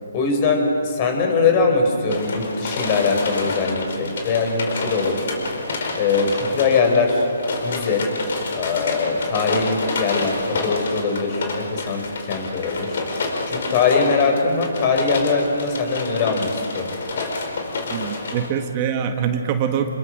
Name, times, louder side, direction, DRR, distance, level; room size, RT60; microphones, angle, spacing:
voice 1, 0.1-5.4 5.9-7.3 7.6-8.1 8.5-13.0 13.5-16.9, left 4 dB, 35° left, 4 dB, 4.9 m, -21 dB
sound 1, 2.1-18.5, left 3 dB, 60° left, 4.6 m, -28 dB
voice 2, 17.9-19.9, right 8 dB, 30° right, 6 dB, 1.5 m, -24 dB
28.5 x 21.5 x 6.6 m, 2.5 s
hypercardioid pair, 150°, 0 cm